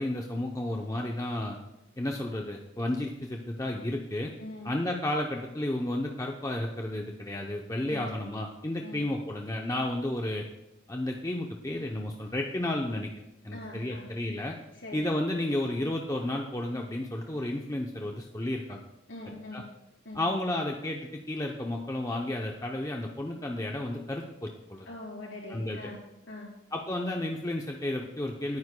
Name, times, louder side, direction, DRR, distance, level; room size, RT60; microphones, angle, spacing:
voice 1, 0.0-1.6 2.0-4.3 4.6-10.5 10.9-13.1 13.4-14.5 14.9-18.8 19.5-19.6 20.1-24.9 25.5-25.9 26.7-28.6, left 1 dB, 15° left, 1 dB, 0.6 m, -32 dB
voice 2, 4.4-4.7 7.9-8.1 8.8-9.0 13.5-14.1 14.7-15.0 19.1-19.7 20.0-20.2 24.8-26.5, left 2 dB, 65° left, -3 dB, 4.4 m, -42 dB
28.5 x 9.6 x 2.2 m, 0.91 s
head